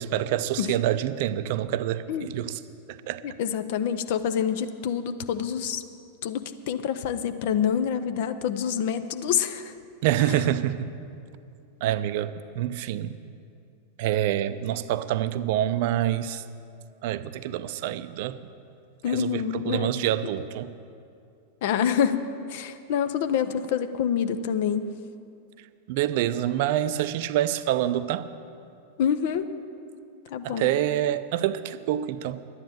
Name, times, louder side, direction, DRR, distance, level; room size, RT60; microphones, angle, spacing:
voice 1, 0.0-2.6 2.9-3.2 10.0-10.9 11.8-13.2 14.0-16.4 17.0-18.4 19.1-20.7 25.9-28.3 30.4-32.4, right 12 dB, 50° right, 13 dB, 0.5 m, -26 dB
voice 2, 3.2-5.8 6.2-9.7 19.0-20.1 21.6-24.9 29.0-29.5 30.3-30.7, left 8 dB, 50° left, 10 dB, 0.7 m, -27 dB
11.5 x 9.7 x 8.8 m, 2.5 s
figure-of-eight pair, 90°, 0 cm